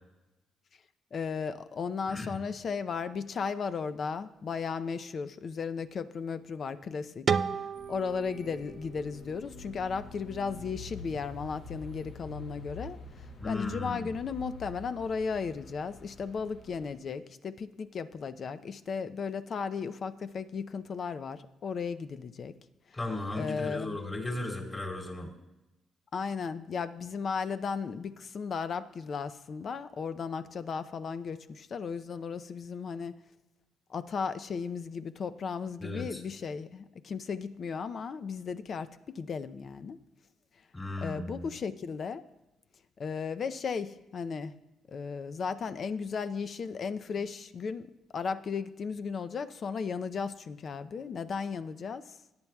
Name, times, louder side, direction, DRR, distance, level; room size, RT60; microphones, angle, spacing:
voice 1, 1.1-7.3 7.9-22.5 23.3-24.0 26.1-33.1 33.9-40.0 41.0-42.2 43.0-44.6 44.9-52.2, left 5 dB, 50° left, 12 dB, 0.5 m, -35 dB
sound 1, 7.3-10.1, right 6 dB, 45° right, 0.4 m, -34 dB
sound 2, 7.7-16.9, left 2 dB, 75° left, 2.4 m, -47 dB
voice 2, 13.4-14.1 22.9-25.3 35.8-36.2 40.7-41.5, left 2 dB, 25° left, 0 dB, 3.3 m, -36 dB
17.5 x 9.6 x 2.3 m, 0.98 s
cardioid pair, 90°, 0 cm